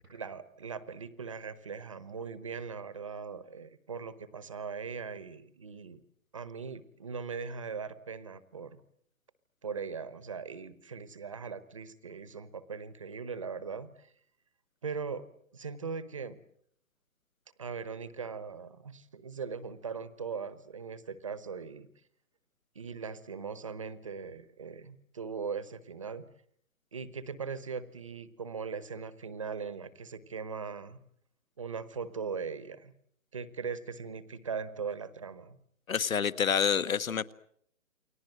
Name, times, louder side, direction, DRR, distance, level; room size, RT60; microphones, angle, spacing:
voice 1, 0.1-6.0 6.3-8.8 9.6-14.1 14.8-15.2 15.5-16.4 17.6-21.9 22.7-26.2 26.9-31.0 31.6-32.9 33.3-35.6, right 5 dB, 25° right, 15 dB, 1.0 m, -40 dB
voice 2, 35.9-37.3, left 7 dB, 75° left, 15 dB, 1.4 m, -28 dB
29.0 x 22.5 x 7.8 m, 0.67 s
hypercardioid pair, 175°, 41 cm